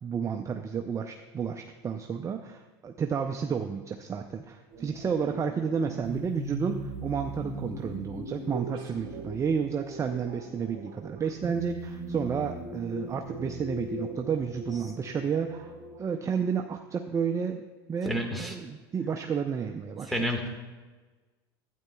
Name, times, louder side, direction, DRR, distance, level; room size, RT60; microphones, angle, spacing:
voice 1, 0.0-15.7 16.0-20.2, right 6 dB, 25° right, 5 dB, 0.5 m, -31 dB
sound 1, 4.7-16.0, right 1 dB, 40° right, 2.3 m, -39 dB
voice 2, 18.0-18.5 20.1-20.5, equal, ahead, 0 dB, 1.7 m, -29 dB
12.0 x 9.2 x 2.3 m, 1.3 s
hypercardioid pair, 95°, 13 cm